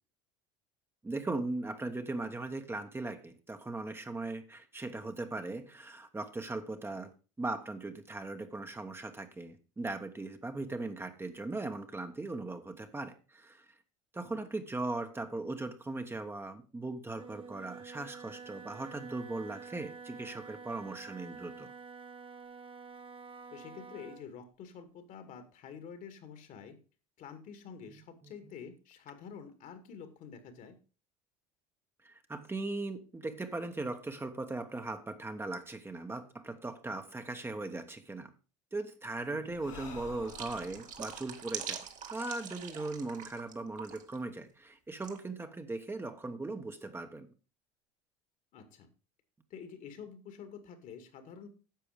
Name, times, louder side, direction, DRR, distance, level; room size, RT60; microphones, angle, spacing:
voice 1, 1.0-13.6 14.1-21.7 28.2-28.3 32.0-38.3 38.7-41.8 42.1-47.3, right 2 dB, 15° right, 1.2 m, -39 dB
Wind instrument woodwind instrument, 17.1-24.3, right 5 dB, 35° right, 1.3 m, -49 dB
voice 2, 23.5-26.8 27.2-30.8 39.3-39.5 48.5-48.9 49.5-51.5, left 7 dB, 55° left, 2.2 m, -48 dB
Breathing, 39.5-43.0, left 4 dB, 90° left, 3.8 m, -51 dB
sound 1, 40.2-43.5 43.8-44.2 45.0-45.2, right 8 dB, 50° right, 1.9 m, -43 dB
10.5 x 6.8 x 5.1 m
hypercardioid pair, 80°, 16 cm